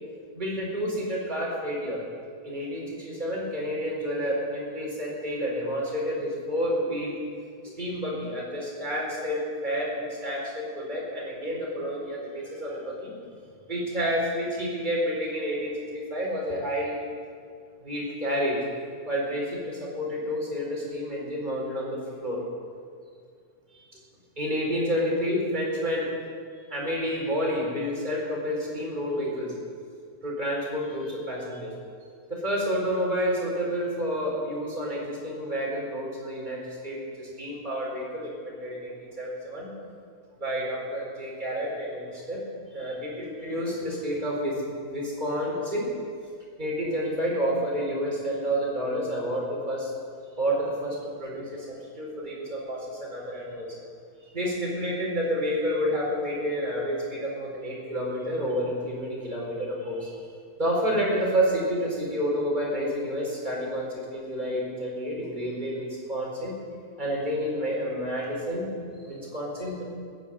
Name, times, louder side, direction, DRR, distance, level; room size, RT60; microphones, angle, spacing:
voice 1, 0.3-2.0 2.4-7.2 7.8-13.1 13.7-17.0 17.8-18.6 19.1-22.4 23.7-23.8 24.4-26.1 26.7-29.5 30.2-31.7 32.3-39.7 40.4-42.4 42.7-45.9 46.6-49.9 50.4-53.7 54.3-60.1 60.6-66.5 67.0-68.7 69.0-69.8, equal, 15° right, -4 dB, 4.5 m, -29 dB
15.0 x 10.5 x 8.9 m, 2.2 s
omnidirectional pair, 3.4 m